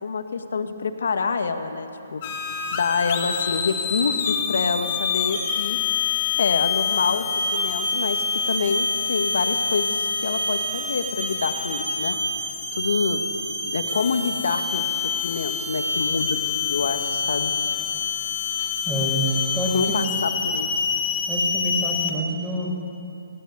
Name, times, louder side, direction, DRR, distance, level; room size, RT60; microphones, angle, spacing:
voice 1, 0.0-2.2 2.7-5.8 6.4-12.2 12.7-14.8 15.2-17.5 19.7-20.8, left 5 dB, 70° left, 7 dB, 1.7 m, -27 dB
sound 1, 2.2-22.1, left 5 dB, 40° left, 2.6 m, -26 dB
voice 2, 18.8-19.3 19.5-20.0 21.3-22.7, equal, 5° right, -3 dB, 6.5 m, -27 dB
20.0 x 17.0 x 8.3 m, 2.7 s
hypercardioid pair, 135°, 0 cm